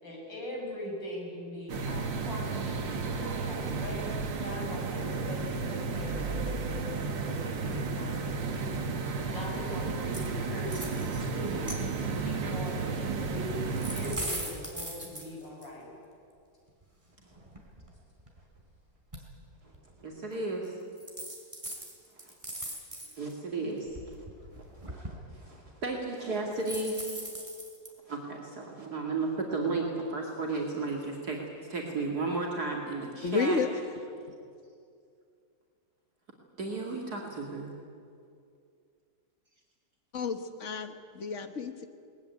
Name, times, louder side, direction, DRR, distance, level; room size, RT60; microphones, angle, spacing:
voice 1, 0.0-4.0 4.4-11.8 12.0-15.9, left 1 dB, 75° left, -2 dB, 7.2 m, -41 dB
sound 1, 1.7-14.2, right 4 dB, 75° right, 2.3 m, -33 dB
sound 2, 10.1-10.3 10.6-11.2 11.6-12.2 13.4-15.7 16.8-16.9 17.3-18.6 19.1-19.2 19.7-19.9 20.6-20.7 21.0-23.3 23.8-25.2 26.5-27.9, right 1 dB, 15° right, 3.9 m, -40 dB
voice 2, 20.0-20.7 22.2-22.3 23.2-24.2 24.9-25.1 25.3-27.0 28.1-31.4 31.7-33.6 36.6-37.7, right 3 dB, 55° right, -1 dB, 2.8 m, -34 dB
voice 3, 33.2-33.8 40.1-41.8, left 4 dB, 45° left, 8 dB, 1.5 m, -31 dB
21.5 x 19.5 x 9.6 m, 2.4 s
omnidirectional pair, 2.0 m